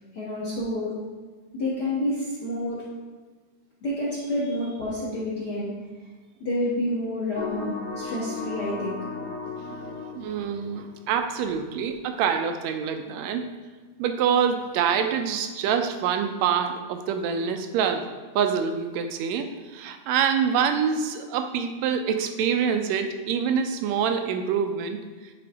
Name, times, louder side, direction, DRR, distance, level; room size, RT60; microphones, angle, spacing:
voice 1, 0.1-0.9 1.5-2.8 3.8-5.7 6.4-9.0 9.7-9.8, left 1 dB, 55° left, -8 dB, 1.2 m, -29 dB
sound 1, 7.4-11.2, left 4 dB, 85° left, 2.8 m, -35 dB
voice 2, 10.1-13.5 14.0-18.0 18.4-25.0, right 7 dB, 80° right, 6 dB, 1.7 m, -26 dB
10.0 x 3.5 x 3.4 m, 1.4 s
omnidirectional pair, 3.5 m